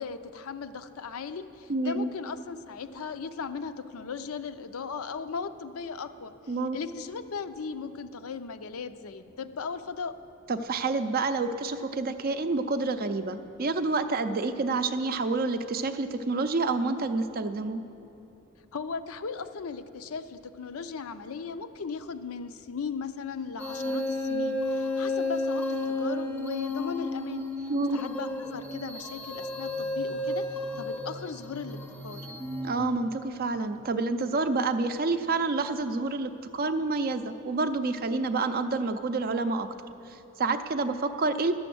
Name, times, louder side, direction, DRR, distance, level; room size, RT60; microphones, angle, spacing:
voice 1, 0.0-6.3 6.7-10.1 18.7-32.3, left 5 dB, 70° left, 10 dB, 0.5 m, -37 dB
voice 2, 1.7-2.1 6.5-6.8 10.5-17.8 27.7-28.0 32.6-39.7 40.1-41.5, right 3 dB, 40° right, 9 dB, 0.4 m, -28 dB
sound 1, 23.6-32.9, left 2 dB, 10° left, 0.6 m, -32 dB
11.5 x 7.0 x 7.7 m, 3.0 s
head